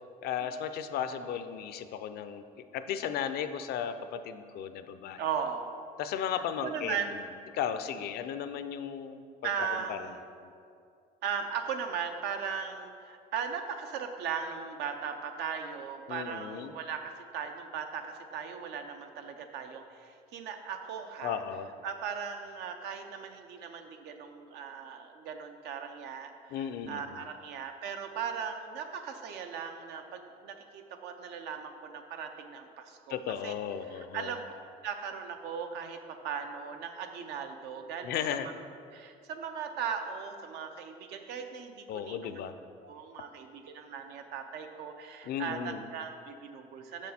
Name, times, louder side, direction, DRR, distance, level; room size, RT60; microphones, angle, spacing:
voice 1, 0.2-2.4 2.7-5.2 6.0-7.0 7.5-9.2 9.9-10.0 10.4-10.5 16.1-16.7 21.2-21.7 26.5-27.2 33.1-34.4 38.0-38.5 41.9-42.5 45.2-45.9, left 8 dB, 70° left, 10 dB, 0.5 m, -35 dB
voice 2, 5.2-5.8 6.6-7.2 9.4-10.2 11.2-21.4 21.8-33.5 33.8-34.4 34.8-38.5 38.9-42.4 42.8-47.1, right 6 dB, 85° right, 6 dB, 0.7 m, -38 dB
6.3 x 6.2 x 4.2 m, 2.4 s
cardioid pair, 110°, 17 cm